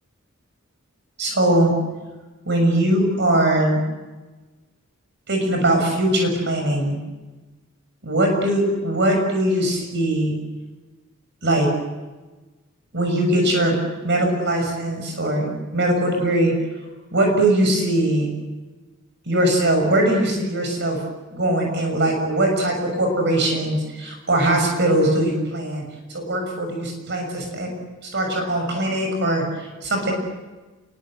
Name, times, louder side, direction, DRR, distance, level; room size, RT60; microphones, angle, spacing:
voice 1, 1.2-1.7 2.5-3.8 5.3-7.0 8.0-10.4 11.4-11.7 12.9-13.8 14.0-16.5 17.1-18.3 19.3-21.0 21.3-25.8 26.1-27.7 28.0-30.1, right 1 dB, 55° right, 3 dB, 7.0 m, -21 dB
29.5 x 24.0 x 8.0 m, 1.2 s
head